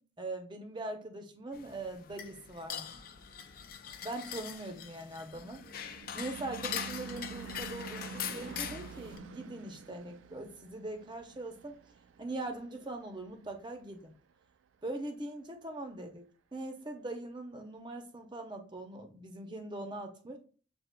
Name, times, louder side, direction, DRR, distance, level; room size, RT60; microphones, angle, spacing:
voice 1, 0.0-3.0 4.0-5.6 6.1-11.8 12.2-14.1 14.8-20.4, right 2 dB, 25° right, 5 dB, 0.6 m, -41 dB
sound 1, 1.5-9.2, left 8 dB, 50° left, 0.4 m, -42 dB
Car passing by / Truck / Engine, 4.9-13.6, right 6 dB, 85° right, 0.4 m, -48 dB
7.8 x 2.8 x 2.2 m, 0.40 s
head